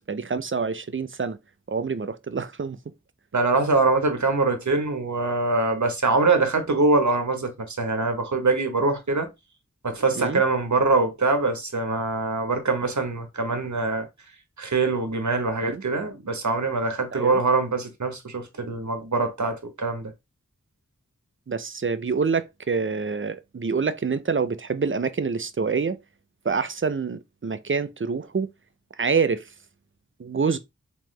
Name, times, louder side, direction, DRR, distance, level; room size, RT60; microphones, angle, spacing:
voice 1, 0.1-1.4 1.7-2.8 6.3-6.4 10.2-10.4 15.6-15.8 17.1-17.4 21.5-26.0 26.4-28.5 29.0-29.4 30.2-30.6, right 5 dB, 45° right, 0.5 m, -26 dB
voice 2, 3.3-9.3 9.8-14.1 14.6-20.1, right 3 dB, 70° right, 1.0 m, -23 dB
3.7 x 3.0 x 3.1 m
wide cardioid pair, 50°, 30 cm